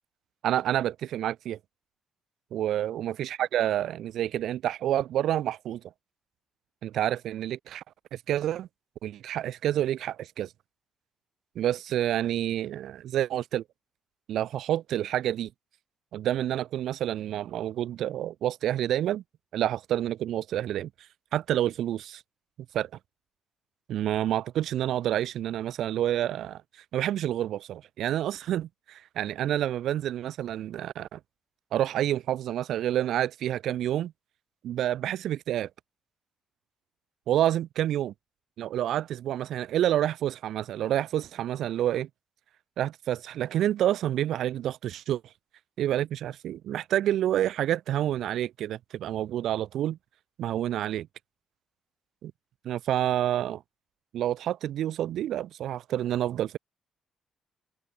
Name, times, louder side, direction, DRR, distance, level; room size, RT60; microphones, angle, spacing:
voice 1, 0.4-1.6 2.5-5.8 6.8-7.8 8.1-8.7 9.0-10.5 11.5-13.6 14.3-15.5 16.1-19.2 19.5-20.9 21.3-22.2 22.7-22.9 23.9-26.6 26.9-31.2 31.7-34.1 34.6-35.7 37.3-38.1 38.6-42.1 42.8-45.2 45.8-50.0 50.4-51.1 52.2-52.3 52.6-53.6 54.1-56.6, right 12 dB, 75° right, 2.6 m, -28 dB
open air
cardioid pair, 90°, 0 cm